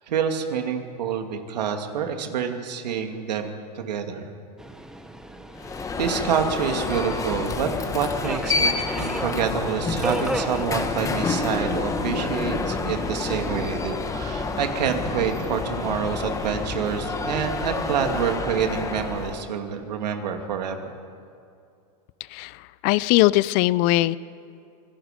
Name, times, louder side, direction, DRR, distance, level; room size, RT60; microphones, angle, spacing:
voice 1, 0.1-4.3 6.0-20.9, right 7 dB, 90° right, 5 dB, 2.5 m, -27 dB
Subway metro underground, 4.6-18.3, right 1 dB, 5° right, 1.1 m, -38 dB
Alarm, 5.6-19.5, left 4 dB, 15° left, 1.4 m, -28 dB
voice 2, 22.3-24.2, left 18 dB, 45° left, 19 dB, 0.5 m, -20 dB
26.0 x 19.5 x 5.2 m, 2.5 s
supercardioid pair, 140°, 21 cm